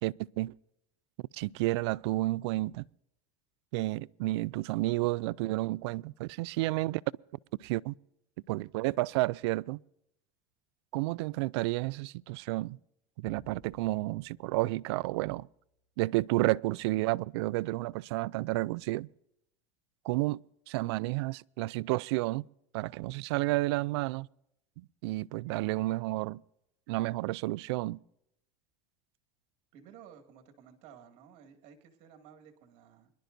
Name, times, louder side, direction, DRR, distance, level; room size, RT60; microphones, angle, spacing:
voice 1, 0.0-0.5 1.3-2.9 3.7-7.0 7.6-7.9 8.5-9.8 10.9-12.8 13.2-15.5 16.0-19.1 20.0-22.4 22.7-24.3 25.0-26.4 26.9-28.0, right 20 dB, 75° right, 0.4 m, -31 dB
sound 1, 15.6-15.9, right 1 dB, 5° right, 1.1 m, -59 dB
voice 2, 29.7-33.1, right 8 dB, 55° right, 2.2 m, -55 dB
24.5 x 11.5 x 2.6 m
supercardioid pair, 125°, 14 cm